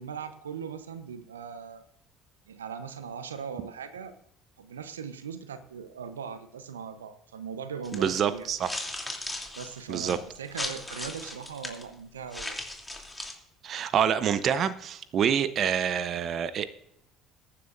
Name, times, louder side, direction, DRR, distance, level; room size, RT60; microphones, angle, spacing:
voice 1, 0.0-1.8 2.5-4.1 4.6-8.5 9.6-12.6, right 6 dB, 85° right, 11 dB, 0.9 m, -39 dB
sound 1, 7.8-8.0 8.6-11.8 12.3-13.3, left 1 dB, 10° left, 3.0 m, -37 dB
voice 2, 7.9-8.7 9.9-10.2 13.6-16.7, right 8 dB, 50° right, 14 dB, 0.7 m, -27 dB
22.5 x 10.0 x 2.6 m, 0.78 s
hypercardioid pair, 60°, 0 cm